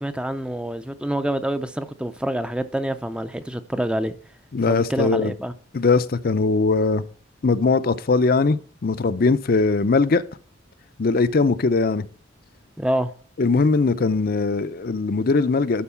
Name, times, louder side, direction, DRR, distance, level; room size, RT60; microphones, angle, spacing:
voice 1, 0.0-4.1 4.7-5.5 12.8-13.1, right 1 dB, 5° right, 0.5 m, -26 dB
voice 2, 4.5-5.3 5.7-7.0 7.4-10.2 11.0-12.1 13.4-15.8, left 3 dB, 50° left, 0.5 m, -20 dB
11.5 x 4.6 x 5.7 m
head